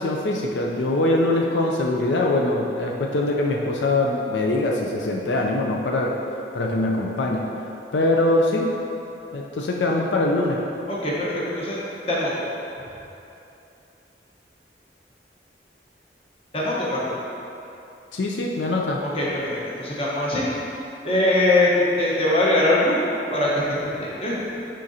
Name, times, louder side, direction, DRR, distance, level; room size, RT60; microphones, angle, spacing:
voice 1, 0.0-6.1 6.5-7.5 7.9-8.7 9.3-10.6 18.1-19.0, left 2 dB, 85° left, 0 dB, 0.5 m, -22 dB
voice 2, 10.9-11.8 12.1-12.5 16.5-17.2 19.1-20.4 21.0-24.6, left 1 dB, 30° left, -6 dB, 1.1 m, -22 dB
10.0 x 3.8 x 2.8 m, 2.9 s
head